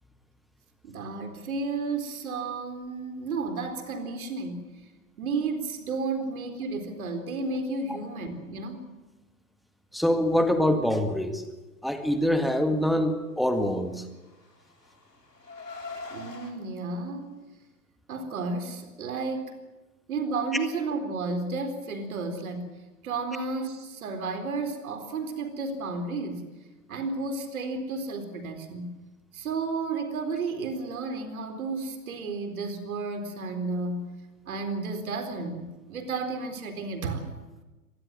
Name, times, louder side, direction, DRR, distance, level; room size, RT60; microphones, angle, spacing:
voice 1, 0.8-4.7 5.2-8.9 16.1-17.4 18.1-19.6 20.1-22.7 23.0-26.5 26.9-29.0 29.3-34.1 34.5-37.3, right 3 dB, 60° right, 7 dB, 4.2 m, -32 dB
voice 2, 9.9-11.4 11.8-14.0, left 1 dB, ahead, 7 dB, 1.8 m, -24 dB
Car, 14.0-16.5, left 3 dB, 90° left, 4.3 m, -42 dB
24.5 x 19.5 x 7.6 m, 1.1 s
figure-of-eight pair, 105°, 47 cm